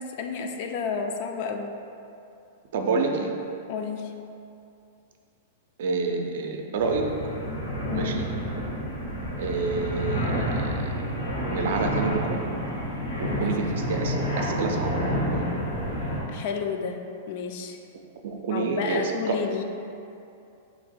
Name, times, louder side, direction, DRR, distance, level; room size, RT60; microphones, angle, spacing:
voice 1, 0.0-1.8 3.7-4.2 7.9-8.2 13.2-13.6 16.3-17.8 18.5-19.6, left 5 dB, 55° left, 5 dB, 0.3 m, -31 dB
voice 2, 2.7-3.3 5.8-7.1 7.9-8.3 9.4-10.9 11.5-12.4 13.2-14.9 15.3-15.4 18.2-19.4, right 4 dB, 70° right, 3 dB, 0.4 m, -28 dB
sound 1, 6.8-16.2, equal, 80° left, 1.2 m, -29 dB
2.9 x 2.8 x 4.2 m, 2.6 s
hypercardioid pair, 130°, 0 cm